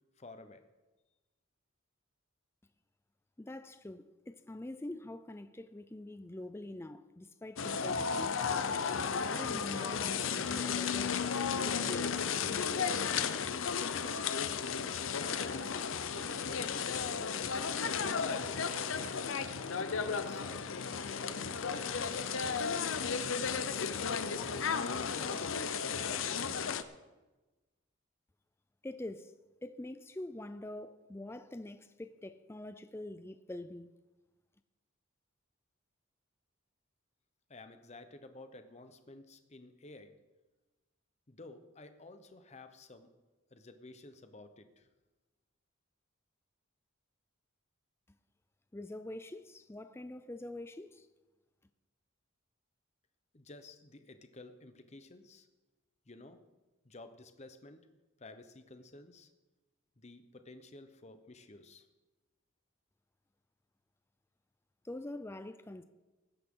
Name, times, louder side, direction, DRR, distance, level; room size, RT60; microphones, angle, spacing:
voice 1, 0.2-0.7 15.2-15.7 16.1-17.3 17.7-18.3 19.7-21.6 22.5-23.3 23.6-24.5 24.9-26.5 37.5-40.1 41.3-43.1 43.5-44.9 53.3-55.5 56.1-56.4 56.8-57.8 58.2-59.3 60.0-61.9, left 2 dB, 35° left, 0.9 m, -52 dB
voice 2, 3.4-8.6 9.3-11.2 11.6-12.8 28.8-29.3 29.6-33.9 48.7-51.1 64.8-65.8, left 1 dB, 10° left, 0.4 m, -45 dB
sound 1, 7.6-26.8, left 6 dB, 75° left, 0.7 m, -34 dB
sound 2, 10.3-22.6, right 2 dB, 45° right, 2.3 m, -58 dB
19.5 x 10.0 x 3.8 m
head